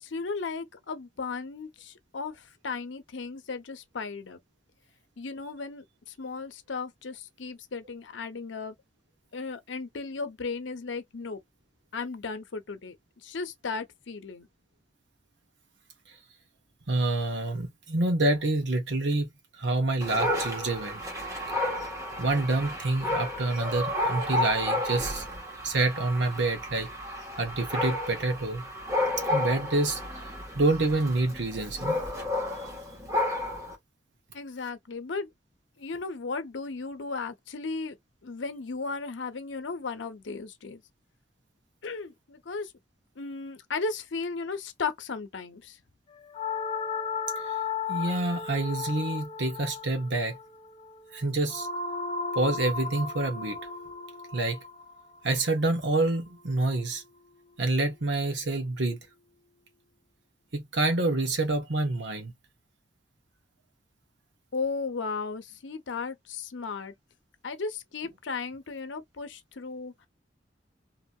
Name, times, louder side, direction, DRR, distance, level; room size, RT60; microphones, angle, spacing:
voice 1, 0.0-4.4 5.2-8.7 9.3-11.4 11.9-13.0 13.2-14.5 34.3-35.3 35.8-38.0 38.2-40.8 41.8-42.7 43.2-45.8 64.5-66.9 67.4-69.9, left 4 dB, 85° left, 0.7 m, -35 dB
voice 2, 16.9-19.3 19.6-21.0 22.2-25.2 25.6-26.9 27.4-28.6 29.3-32.0 47.9-50.3 51.1-51.7 52.3-53.6 54.3-54.6 55.2-57.0 57.6-59.0 60.5-62.3, right 2 dB, 70° right, 1.0 m, -27 dB
Dog, 20.0-33.8, left 1 dB, 20° right, 1.2 m, -32 dB
sound 1, 46.3-56.5, left 5 dB, 35° left, 0.6 m, -35 dB
2.8 x 2.7 x 2.3 m
head